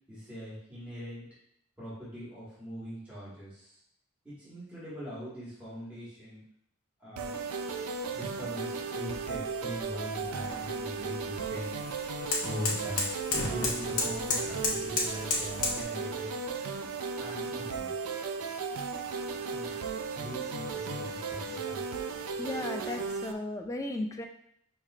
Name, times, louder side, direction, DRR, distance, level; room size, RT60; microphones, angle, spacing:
voice 1, 0.1-1.3 1.8-3.8 4.2-6.4 7.0-7.3 8.1-11.7 12.4-13.1 13.5-16.5 17.1-17.9 19.5-19.7 20.1-21.8, equal, 5° right, -11 dB, 1.7 m, -41 dB
sound 1, 7.2-23.3, right 5 dB, 80° right, 0.4 m, -36 dB
sound 2, 9.0-15.8, left 3 dB, 80° left, 1.0 m, -34 dB
voice 2, 22.4-24.3, left 2 dB, 15° left, 4 dB, 0.3 m, -35 dB
5.5 x 3.2 x 2.4 m, 0.72 s
head